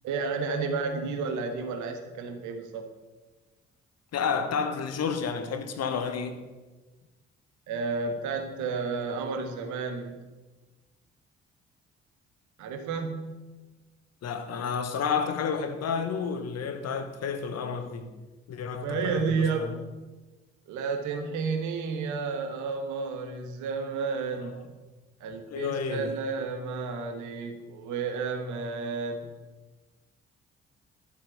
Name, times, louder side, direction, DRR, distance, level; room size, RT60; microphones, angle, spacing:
voice 1, 0.0-2.9 7.7-10.3 12.6-13.4 18.8-19.9 20.7-24.7 25.2-29.3, right 4 dB, 65° right, 1.6 m, -31 dB
voice 2, 4.1-6.4 14.2-18.1 18.5-19.7 25.5-26.1, left 6 dB, 50° left, 1.4 m, -30 dB
12.5 x 7.5 x 7.0 m
figure-of-eight pair, 45°, 32 cm